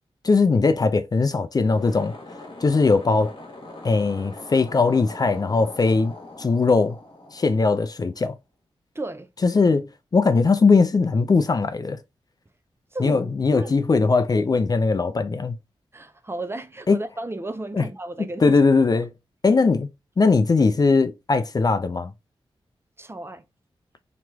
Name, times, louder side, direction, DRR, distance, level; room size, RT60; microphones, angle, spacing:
voice 1, 0.2-2.1 2.6-3.3 3.8-6.1 6.4-7.0 7.3-8.3 9.4-12.0 13.0-15.6 16.9-17.0 17.7-17.9 18.4-19.1 19.4-19.9 20.2-22.1, left 4 dB, 40° left, 0.4 m, -20 dB
sound 1, 1.6-8.1, left 2 dB, 60° left, 1.2 m, -41 dB
voice 2, 8.9-9.3 12.9-13.3 13.6-13.7 15.9-18.6 23.0-23.4, right 2 dB, 25° right, 0.6 m, -33 dB
3.1 x 2.9 x 2.3 m
cardioid pair, 50°, 10 cm